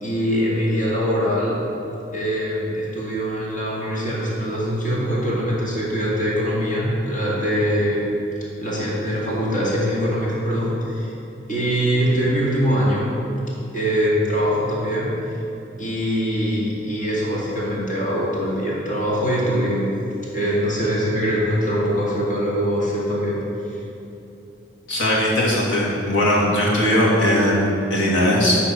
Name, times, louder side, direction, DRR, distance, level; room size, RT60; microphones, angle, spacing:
voice 1, 0.0-1.6 2.1-8.0 8.6-11.1 11.5-13.1 13.7-15.1 15.8-19.9 20.3-23.4, equal, 40° left, -6 dB, 2.2 m, -22 dB
voice 2, 24.9-28.6, left 1 dB, 85° left, -4 dB, 2.1 m, -19 dB
10.5 x 4.1 x 6.1 m, 2.8 s
head